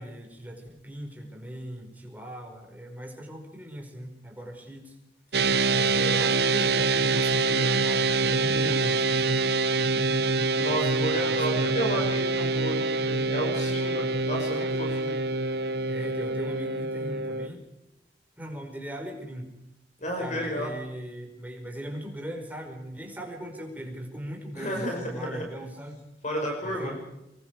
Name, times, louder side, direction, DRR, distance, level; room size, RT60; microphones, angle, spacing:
voice 1, 0.0-5.0 5.7-9.4 10.6-12.1 15.9-17.6 18.4-19.5 20.2-26.1 26.6-27.1, equal, 10° right, 3 dB, 5.0 m, -39 dB
sound 1, 5.3-17.5, right 3 dB, 65° right, 1.0 m, -25 dB
voice 2, 10.6-15.2 20.0-20.7 24.5-25.4 26.2-26.9, equal, 45° left, 1 dB, 5.6 m, -32 dB
25.5 x 22.5 x 4.8 m, 0.89 s
head